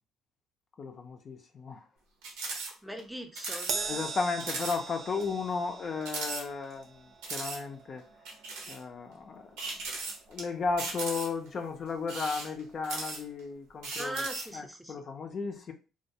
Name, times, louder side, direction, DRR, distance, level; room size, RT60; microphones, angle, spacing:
voice 1, 0.8-1.8 3.9-7.0 7.3-8.0 8.7-9.6 10.3-14.1 14.5-15.7, left 4 dB, 50° left, 0.4 m, -34 dB
sound 1, 2.2-2.7 3.0-3.1 3.4-3.7 4.1-4.2 4.4-4.8 5.2-5.3 6.0-6.8 7.2-7.6 8.3-8.8 9.6-10.4 10.8-11.5 12.0-13.4 13.8-14.5, right 3 dB, 80° right, 0.7 m, -37 dB
voice 2, 2.8-4.0 14.0-14.9, right 1 dB, 5° right, 0.6 m, -40 dB
Crash cymbal, 3.7-10.3 10.6-10.9 11.9-12.0, right 5 dB, 65° right, 0.3 m, -41 dB
2.3 x 2.1 x 2.7 m
supercardioid pair, 70°, 0 cm